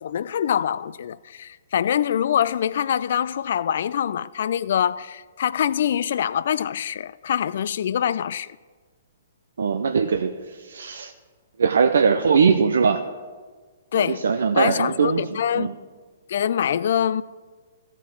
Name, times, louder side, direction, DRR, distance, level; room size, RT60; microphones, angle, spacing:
voice 1, 0.0-8.5 13.9-14.2 14.5-15.7 16.3-17.2, left 9 dB, 60° left, 0.3 m, -24 dB
voice 2, 9.6-11.1 11.6-13.0 13.9-15.7, right 5 dB, 70° right, 0.6 m, -21 dB
14.0 x 5.9 x 6.0 m
hypercardioid pair, 125°, 0 cm